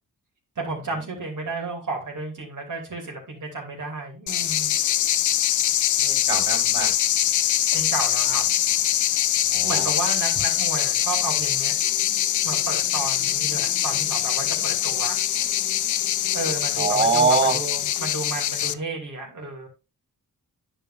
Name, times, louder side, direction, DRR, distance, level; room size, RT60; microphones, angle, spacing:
voice 1, 0.6-4.7 7.7-8.4 9.6-11.7 12.4-15.2 16.3-19.7, right 3 dB, 50° right, -1 dB, 2.7 m, -32 dB
sound 1, 4.3-18.7, left 11 dB, 55° left, 0.4 m, -23 dB
voice 2, 6.0-6.9 9.5-9.9 16.8-17.6, right 4 dB, 35° right, -6 dB, 3.5 m, -23 dB
sound 2, 11.8-18.1, left 4 dB, 75° left, 2.3 m, -45 dB
9.9 x 5.6 x 2.5 m, 0.28 s
cardioid pair, 70°, 38 cm